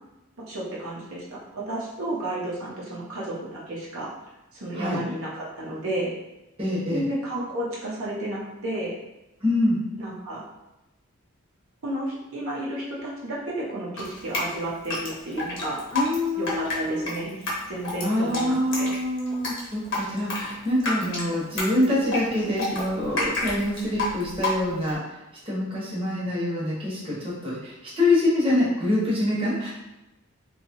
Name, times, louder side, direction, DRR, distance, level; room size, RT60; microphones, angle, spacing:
voice 1, 0.5-4.1 4.5-6.1 6.9-9.0 10.0-10.4 11.8-15.8 16.4-17.4 17.7-18.9, right 1 dB, 70° right, -6 dB, 0.7 m, -32 dB
voice 2, 6.6-7.1 9.4-9.8 15.9-17.1 18.0-25.0 25.5-29.7, left 1 dB, 25° right, -7 dB, 0.9 m, -25 dB
Drip, 14.0-24.9, left 2 dB, 60° left, 0.8 m, -30 dB
2.7 x 2.3 x 2.9 m, 0.97 s
head